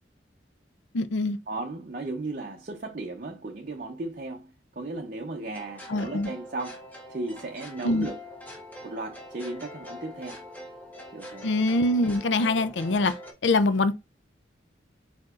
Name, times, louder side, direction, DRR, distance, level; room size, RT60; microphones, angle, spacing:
voice 1, 0.9-1.4 5.9-6.3 7.8-8.1 11.4-13.1 13.4-14.0, left 2 dB, 80° left, 0.5 m, -24 dB
voice 2, 1.5-8.2 8.8-10.4 11.1-11.5, right 2 dB, 45° right, 0.6 m, -36 dB
sound 1, 5.5-13.3, left 1 dB, 10° left, 1.2 m, -44 dB
4.7 x 4.3 x 2.4 m
head